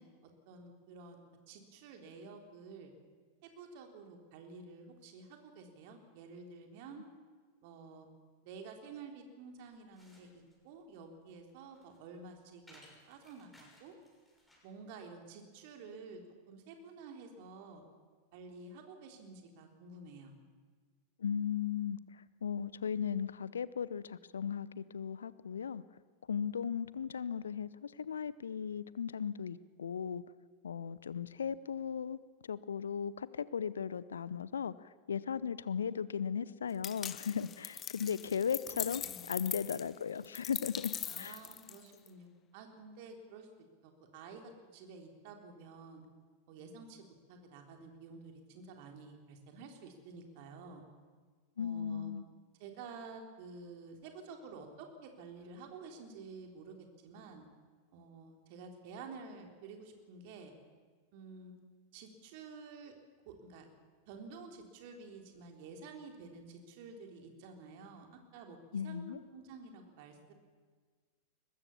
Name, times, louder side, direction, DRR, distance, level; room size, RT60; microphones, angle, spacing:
voice 1, 0.0-2.9 3.4-7.1 7.6-8.1 8.4-12.8 13.1-13.9 14.6-17.8 18.3-20.3 38.7-39.3 41.1-43.5 43.8-46.0 46.5-50.8 51.6-52.1 52.6-57.4 57.9-60.5 61.1-61.6 61.9-63.0 63.3-63.7 64.1-70.3, right 4 dB, 45° right, 4 dB, 3.5 m, -51 dB
sound 1, 9.6-14.8, left 1 dB, 5° left, 6.3 m, -63 dB
voice 2, 21.2-25.8 26.3-30.2 30.6-41.4 51.6-52.2 68.7-69.2, left 7 dB, 70° left, 18 dB, 0.7 m, -37 dB
sound 2, 36.8-42.1, left 9 dB, 25° left, 0.7 m, -41 dB
22.5 x 20.0 x 7.2 m, 1.5 s
figure-of-eight pair, 90°, 0 cm